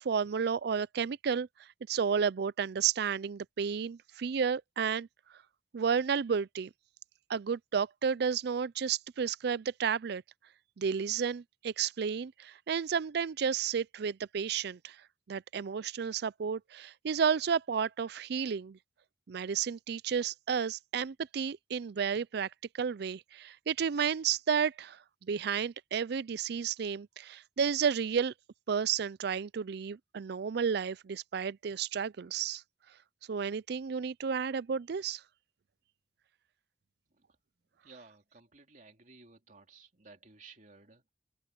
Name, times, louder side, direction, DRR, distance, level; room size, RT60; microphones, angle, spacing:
voice 1, 0.0-1.5 1.9-5.1 5.7-6.7 7.3-10.2 10.8-15.0 15.3-18.8 19.3-22.5 22.7-28.3 28.7-32.6 33.3-35.2, right 6 dB, 65° right, 0.4 m, -32 dB
voice 2, 37.8-41.1, right 4 dB, 45° right, 3.1 m, -56 dB
head